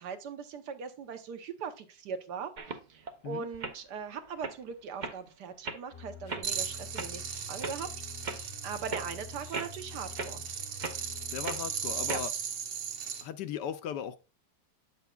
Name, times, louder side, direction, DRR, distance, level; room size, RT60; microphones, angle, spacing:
voice 1, 0.0-2.5 2.9-7.9 8.6-10.4 12.1-12.2, right 6 dB, 65° right, 1.4 m, -40 dB
sound 1, 2.6-3.1 3.5-3.7 4.2-4.6 5.0-5.2 5.6-5.8 6.3-6.5 6.9-7.1 7.6-7.8 8.2-8.4 8.9-9.1 9.5-9.8 10.2-10.3 10.8-11.0 11.4-11.6 12.1-12.2, right 3 dB, 45° right, 0.6 m, -37 dB
sound 2, 5.9-12.3, left 7 dB, 40° left, 0.8 m, -48 dB
sound 3, 6.4-13.2, right 7 dB, 80° right, 1.9 m, -37 dB
voice 2, 11.3-12.3 13.2-14.2, left 9 dB, 75° left, 1.1 m, -37 dB
8.9 x 7.1 x 2.3 m
omnidirectional pair, 2.0 m